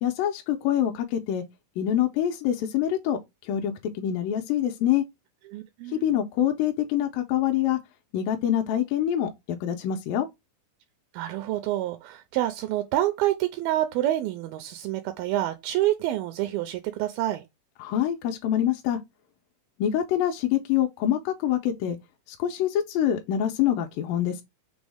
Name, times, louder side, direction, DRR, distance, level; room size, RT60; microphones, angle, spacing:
voice 1, 0.0-1.4 1.8-5.1 5.9-7.8 8.1-9.3 9.6-10.3 17.8-19.0 19.8-22.0 22.3-24.4, left 10 dB, 80° left, 2.1 m, -25 dB
voice 2, 5.5-6.0 11.1-17.5, right 14 dB, 80° right, 2.3 m, -27 dB
6.0 x 2.0 x 3.3 m
omnidirectional pair, 4.4 m